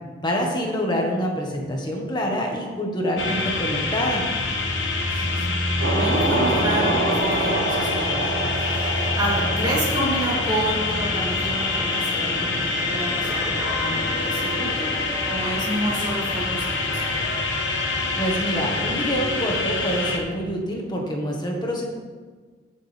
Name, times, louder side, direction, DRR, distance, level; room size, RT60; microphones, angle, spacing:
voice 1, 0.2-4.2 18.2-21.8, equal, 25° left, 0 dB, 1.7 m, -26 dB
sound 1, 3.2-20.2, left 3 dB, 80° left, 1.4 m, -25 dB
voice 2, 5.1-5.6 5.9-14.9 15.3-16.7, right 1 dB, 25° right, -7 dB, 3.4 m, -29 dB
sound 2, 5.8-13.8, right 2 dB, 65° right, 1.4 m, -27 dB
sound 3, 9.0-17.5, left 1 dB, 50° left, 3.1 m, -39 dB
14.5 x 7.3 x 3.6 m, 1.4 s
head